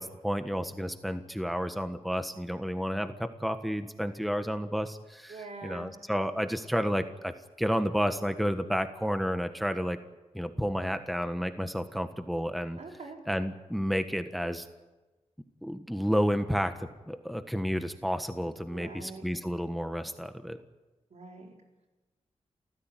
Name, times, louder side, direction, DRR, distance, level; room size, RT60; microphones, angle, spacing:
voice 1, 0.0-5.3 5.6-10.0 10.3-12.8 13.3-14.6 15.6-20.6, equal, ahead, 9 dB, 1.4 m, -31 dB
voice 2, 5.3-5.9 12.8-13.2 18.7-19.3 21.1-21.5, right 3 dB, 75° right, 2 dB, 4.6 m, -44 dB
29.0 x 15.0 x 9.3 m, 1.1 s
wide cardioid pair, 90°, 12 cm